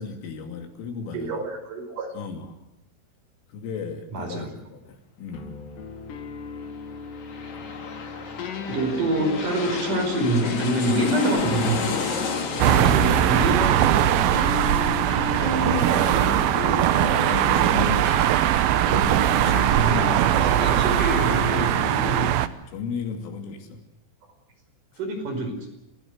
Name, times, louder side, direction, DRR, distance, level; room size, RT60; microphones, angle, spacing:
voice 1, 0.0-1.4 2.1-2.6 3.5-5.6 12.8-13.7 14.6-14.9 15.9-17.2 17.5-18.9 19.4-20.2 21.9-23.8, left 5 dB, 90° left, 5 dB, 5.3 m, -36 dB
voice 2, 1.1-2.1 4.1-4.5 8.6-12.0 12.6-14.6 19.6-21.8 25.0-25.7, right 2 dB, 45° right, 4 dB, 6.4 m, -26 dB
sound 1, 5.3-22.3, left 6 dB, 65° left, 4.2 m, -34 dB
sound 2, 6.8-18.2 18.5-18.6, left 5 dB, 45° left, 3.4 m, -34 dB
sound 3, 12.6-22.5, right 12 dB, 85° right, 2.1 m, -20 dB
29.0 x 15.5 x 8.0 m, 0.87 s
omnidirectional pair, 5.6 m